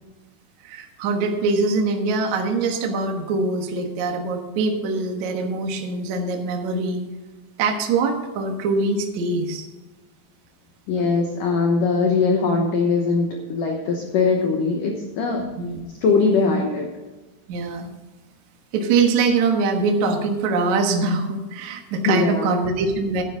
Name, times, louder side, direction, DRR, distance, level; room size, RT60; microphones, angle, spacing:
voice 1, 0.6-7.0 7.6-9.7 15.6-15.8 17.5-17.9 18.7-23.2, right 3 dB, 75° right, 3 dB, 1.7 m, -23 dB
voice 2, 10.9-15.4 16.0-16.9 22.1-22.5, left 4 dB, 90° left, 2 dB, 1.8 m, -21 dB
12.5 x 9.9 x 3.9 m, 1.2 s
omnidirectional pair, 5.6 m